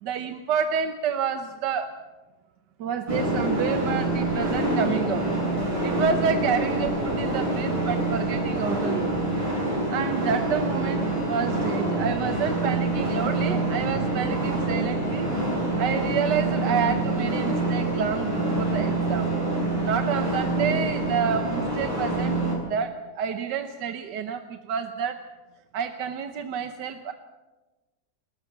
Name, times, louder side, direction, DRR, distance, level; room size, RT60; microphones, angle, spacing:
voice 1, 0.0-1.9 2.8-5.3 5.8-9.1 9.7-15.3 15.8-19.3 19.8-22.4 22.7-25.2 25.7-27.1, right 7 dB, 85° right, 8 dB, 1.6 m, -29 dB
sound 1, 3.1-22.6, right 2 dB, 20° right, 7.9 m, -26 dB
29.5 x 13.5 x 7.2 m, 1.2 s
omnidirectional pair, 1.8 m